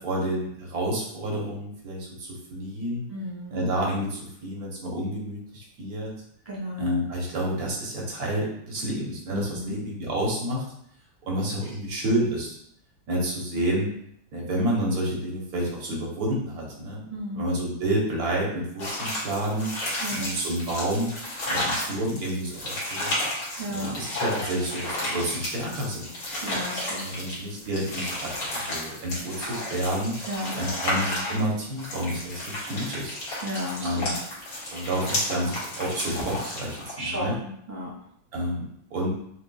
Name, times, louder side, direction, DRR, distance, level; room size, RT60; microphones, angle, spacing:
voice 1, 0.0-3.0 3.5-6.1 6.8-10.7 11.2-12.5 13.1-13.9 14.3-17.0 17.3-19.7 20.1-21.1 21.4-23.1 23.7-26.1 27.0-30.2 30.5-33.2 33.8-34.2 34.7-37.4 38.3-39.1, right 1 dB, 55° right, -2 dB, 1.3 m, -29 dB
voice 2, 3.1-3.6 6.4-6.9 9.3-9.8 17.1-17.5 20.0-20.3 23.6-23.9 26.4-27.1 30.2-30.5 33.4-34.1 37.0-37.9, equal, 10° left, -5 dB, 1.2 m, -33 dB
sound 1, 18.8-36.9, left 1 dB, 50° left, 1.6 m, -32 dB
6.0 x 2.4 x 2.3 m, 0.70 s
omnidirectional pair, 2.2 m